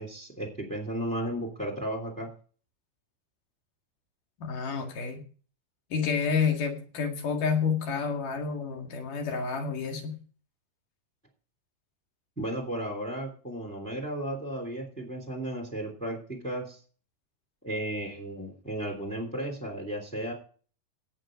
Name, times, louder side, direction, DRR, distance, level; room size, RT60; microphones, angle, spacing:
voice 1, 0.0-2.3 12.4-16.8 17.6-20.3, right 1 dB, ahead, 1 dB, 2.2 m, -34 dB
voice 2, 4.4-5.2 5.9-10.2, left 5 dB, 60° left, 3 dB, 3.3 m, -29 dB
17.0 x 6.4 x 5.1 m, 0.41 s
omnidirectional pair, 4.4 m